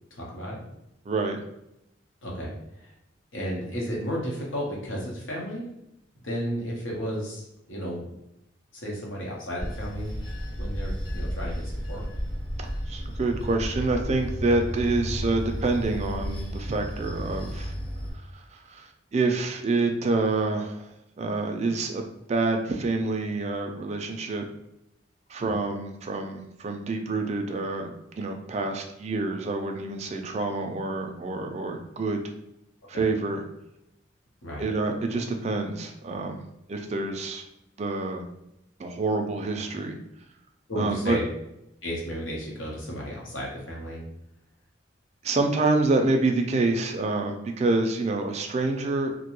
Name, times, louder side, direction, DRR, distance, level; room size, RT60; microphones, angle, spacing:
voice 1, 0.1-0.6 2.2-2.9 3.3-5.7 6.2-8.0 8.7-10.2 10.6-12.1 25.4-25.5 32.9-33.0 34.4-34.7 40.7-41.2 41.8-44.0, equal, 80° left, -3 dB, 0.9 m, -33 dB
voice 2, 1.1-1.4 12.6-17.7 18.3-20.9 21.2-24.5 25.3-32.2 32.9-33.4 34.6-36.4 36.7-37.4 37.8-38.2 38.8-40.0 40.8-41.2 45.2-49.1, right 3 dB, 35° right, 4 dB, 0.3 m, -27 dB
Bell / Train, 9.6-18.1, equal, 25° left, 0.7 m, -33 dB
2.5 x 2.2 x 2.9 m, 0.84 s
head